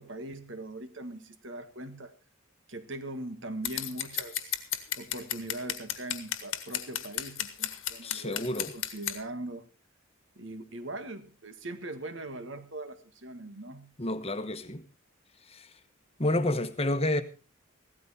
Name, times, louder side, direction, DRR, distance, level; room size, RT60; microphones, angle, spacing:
voice 1, 0.0-2.1 2.7-4.5 5.0-9.6 10.3-13.9, right 1 dB, 60° right, 1.7 m, -41 dB
Scissors, 3.7-9.2, left 11 dB, 70° left, 1.6 m, -33 dB
voice 2, 8.0-8.7 14.0-14.8 15.5-15.7 16.2-17.2, left 1 dB, 30° left, 1.1 m, -29 dB
16.0 x 13.0 x 4.2 m
head